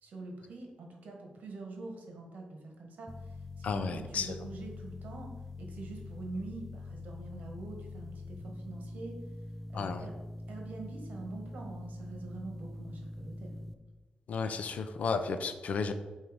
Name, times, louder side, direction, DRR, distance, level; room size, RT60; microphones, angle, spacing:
voice 1, 0.0-5.3 5.6-9.2 9.7-10.1 10.5-13.6, right 3 dB, 80° right, 2 dB, 1.3 m, -45 dB
sound 1, 3.1-13.7, left 2 dB, ahead, 0.3 m, -44 dB
voice 2, 3.6-4.3 9.7-10.1 14.3-15.9, left 5 dB, 60° left, 9 dB, 0.5 m, -33 dB
7.8 x 2.7 x 5.0 m, 1.2 s
wide cardioid pair, 170°, 3 cm